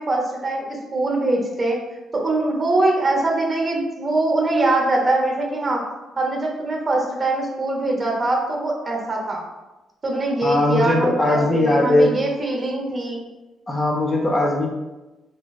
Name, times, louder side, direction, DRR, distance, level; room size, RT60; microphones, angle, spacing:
voice 1, 0.0-1.8 2.1-5.8 6.2-9.4 10.0-13.2, right 2 dB, 35° right, -1 dB, 0.7 m, -22 dB
voice 2, 10.4-12.1 13.7-14.7, left 1 dB, 25° left, -1 dB, 0.6 m, -19 dB
3.0 x 2.8 x 2.3 m, 1.1 s
cardioid pair, 90°, 0 cm